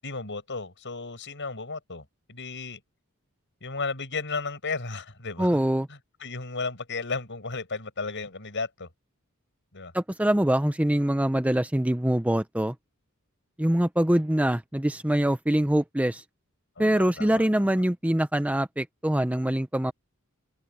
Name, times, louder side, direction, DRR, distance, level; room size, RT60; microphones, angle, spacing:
voice 1, 0.0-2.8 3.6-5.6 5.9-8.9 9.7-9.9 16.8-17.4, left 4 dB, 60° left, 7.7 m, -34 dB
voice 2, 5.4-5.9 9.9-12.7 13.6-16.2 16.8-19.9, right 1 dB, 5° right, 0.6 m, -24 dB
open air
head